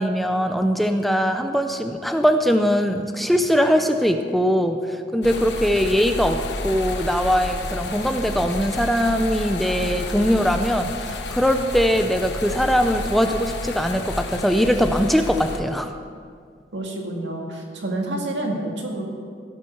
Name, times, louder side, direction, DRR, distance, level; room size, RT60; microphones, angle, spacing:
voice 1, 0.0-15.9, equal, ahead, 6 dB, 0.4 m, -21 dB
sound 1, 5.2-15.6, left 2 dB, 75° left, 0.9 m, -31 dB
voice 2, 16.7-19.2, right 1 dB, 85° right, 1 dB, 2.0 m, -28 dB
16.0 x 8.2 x 4.6 m, 2.1 s
head